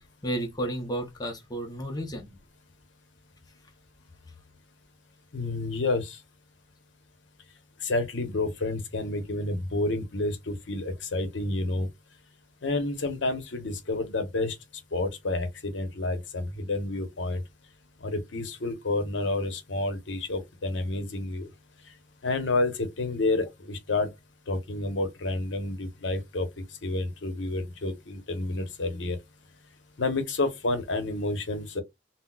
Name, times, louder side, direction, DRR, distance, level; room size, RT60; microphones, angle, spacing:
voice 1, 0.2-2.3, right 1 dB, 20° left, 0.6 m, -32 dB
voice 2, 5.3-6.2 7.8-11.9 12.6-14.6 14.9-17.4 18.0-21.5 22.2-24.1 24.5-26.5 26.8-29.2 30.0-31.8, left 2 dB, 75° left, 0.7 m, -29 dB
3.9 x 2.0 x 2.2 m
head